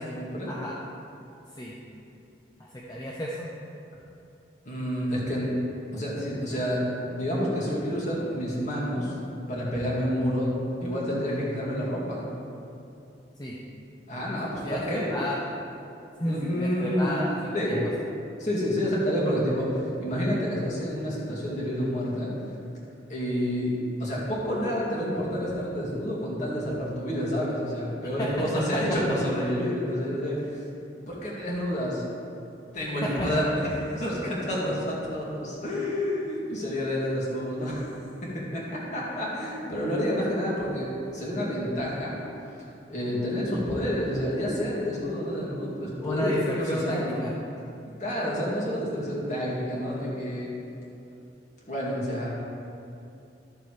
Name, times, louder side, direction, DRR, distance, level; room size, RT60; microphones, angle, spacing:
voice 1, 0.2-0.5 4.7-5.6 5.9-6.9 7.1-9.1 9.5-10.5 10.8-12.3 14.1-15.1 16.2-17.2 17.5-17.9 18.4-22.3 23.1-23.7 24.0-30.6 31.1-32.0 32.7-37.9 38.2-42.2 42.9-47.3 48.0-50.5 51.7-52.3, equal, 40° left, -5 dB, 2.0 m, -29 dB
voice 2, 2.6-3.5 13.4-13.6 14.6-15.4 16.2-17.9 28.2-28.8 30.1-30.2 33.0-33.3 46.0-47.3, equal, 20° left, -4 dB, 0.7 m, -32 dB
12.5 x 6.7 x 3.3 m, 2.8 s
head